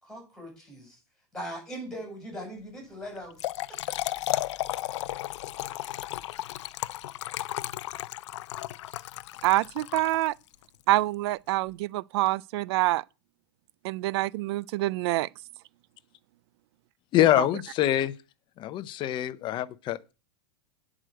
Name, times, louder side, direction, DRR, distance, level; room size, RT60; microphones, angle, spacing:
voice 1, 0.0-1.0 1.3-3.8, equal, 5° left, 6.4 m, -40 dB
Trickle dribble / Fill (with liquid), 3.2-10.6, left 15 dB, 70° left, 0.5 m, -34 dB
voice 2, 9.4-10.3 10.9-13.0 13.8-15.3 17.4-17.5, right 18 dB, 60° right, 0.4 m, -26 dB
voice 3, 17.1-18.1 18.6-20.1, left 13 dB, 30° left, 0.7 m, -25 dB
8.9 x 4.9 x 7.7 m
supercardioid pair, 140°, 15 cm